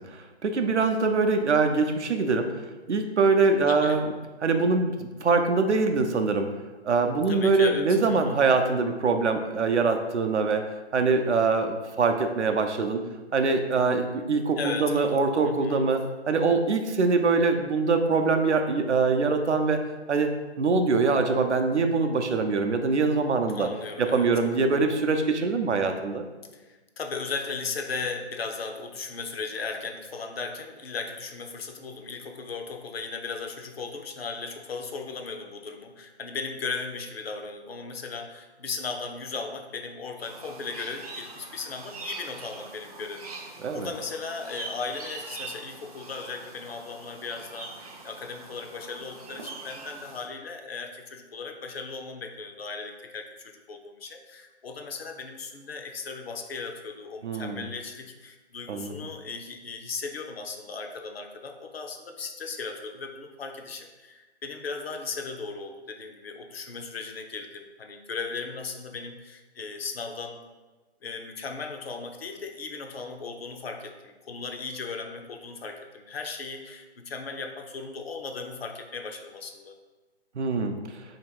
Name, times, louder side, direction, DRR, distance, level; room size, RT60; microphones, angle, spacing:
voice 1, 0.1-2.5 2.9-4.0 4.4-6.5 6.8-10.6 10.9-13.0 13.3-19.8 20.1-20.3 20.6-23.7 24.0-26.3 43.6-43.9 57.2-57.6 58.7-58.9 80.4-80.7, right 4 dB, 80° right, 5 dB, 0.6 m, -23 dB
voice 2, 3.7-4.0 7.3-8.3 14.6-15.9 23.5-24.3 26.5-43.3 43.7-70.4 71.0-79.8, left 4 dB, 60° left, 4 dB, 0.6 m, -37 dB
sound 1, 40.2-50.3, right 3 dB, 35° right, 0.5 m, -43 dB
3.0 x 2.8 x 4.5 m, 1.2 s
figure-of-eight pair, 145°, 34 cm